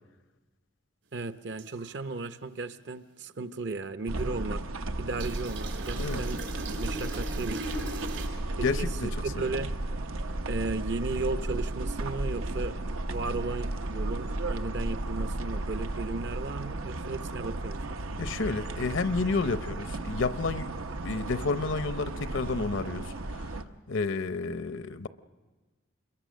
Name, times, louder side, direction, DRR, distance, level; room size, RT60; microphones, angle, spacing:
voice 1, 1.1-4.6 5.0-6.4 6.7-7.7 8.6-9.7 10.5-18.0, right 3 dB, 55° right, 0.7 m, -35 dB
sound 1, 1.6-1.9 5.2-8.3, right 2 dB, 75° right, 4.1 m, -39 dB
sound 2, 4.1-23.6, right 2 dB, 90° right, 0.9 m, -34 dB
voice 2, 8.6-9.1 18.2-20.7 21.0-23.4 23.9-25.1, left 4 dB, 70° left, 0.7 m, -30 dB
26.5 x 22.5 x 6.3 m
head